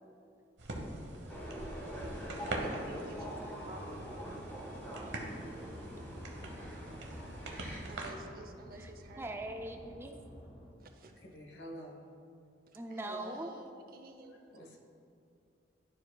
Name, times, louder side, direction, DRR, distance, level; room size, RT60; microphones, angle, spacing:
sound 1, 0.6-8.1, right 1 dB, 85° right, 1.0 m, -43 dB
sound 2, 1.3-7.8, equal, 10° left, 1.2 m, -44 dB
voice 1, 2.4-4.3 7.9-9.3 10.8-11.1 12.9-14.4, right 2 dB, 55° right, 5 dB, 0.6 m, -49 dB
sound 3, 5.4-10.7, equal, 40° left, 1.3 m, -53 dB
voice 2, 5.4-5.7 7.7-7.8 8.7-10.2 12.7-13.5, right 1 dB, 15° right, 4 dB, 0.3 m, -43 dB
voice 3, 11.1-12.1 14.2-14.8, equal, 70° left, 1 dB, 1.0 m, -49 dB
12.5 x 4.6 x 2.3 m, 2.6 s
head